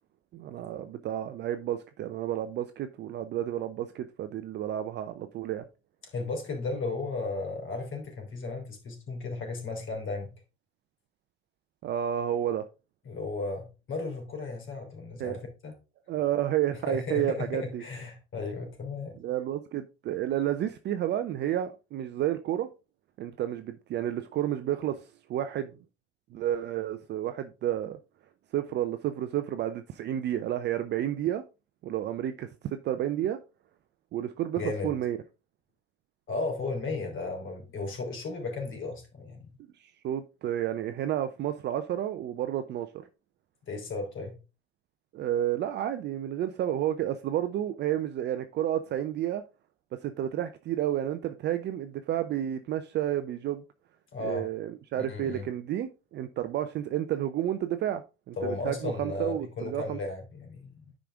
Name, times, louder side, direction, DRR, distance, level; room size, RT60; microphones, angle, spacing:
voice 1, 0.3-5.6 11.8-12.7 15.2-15.4 16.1-17.8 19.2-22.7 23.2-25.7 26.3-28.0 28.5-31.4 31.8-33.4 34.1-35.2 39.8-42.9 45.1-49.4 50.0-53.6 54.2-58.0 58.3-60.0, right 11 dB, 35° right, 0.6 m, -31 dB
voice 2, 6.0-10.3 13.0-15.7 16.9-19.1 34.6-34.9 36.3-39.5 43.7-44.3 54.1-54.5 55.0-55.5 58.4-60.8, left 3 dB, 40° left, 3.2 m, -35 dB
10.0 x 5.1 x 3.5 m
figure-of-eight pair, 75°, 32 cm